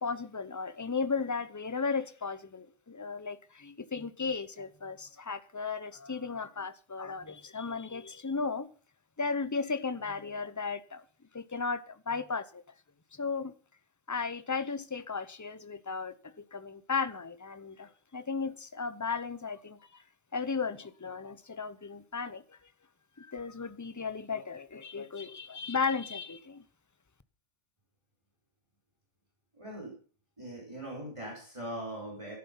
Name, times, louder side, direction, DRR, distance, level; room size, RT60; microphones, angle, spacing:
voice 1, 0.0-8.7 9.2-11.0 11.3-12.6 13.1-13.6 14.1-20.0 20.3-22.6 23.2-26.6, left 5 dB, 20° left, 0.6 m, -35 dB
voice 2, 29.5-30.0 30.4-32.3, right 1 dB, 20° right, 5.5 m, -40 dB
13.0 x 11.5 x 5.7 m
omnidirectional pair, 1.4 m